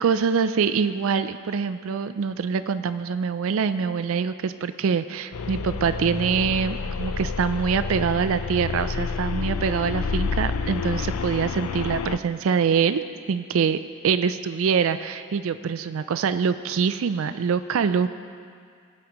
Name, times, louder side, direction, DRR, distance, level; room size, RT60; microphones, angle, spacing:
voice 1, 0.0-13.0 13.3-13.8 14.0-18.1, right 6 dB, 65° right, 12 dB, 0.4 m, -24 dB
sound 1, 5.3-12.2, left 5 dB, 80° left, 0.5 m, -29 dB
20.5 x 8.8 x 3.0 m, 2.2 s
head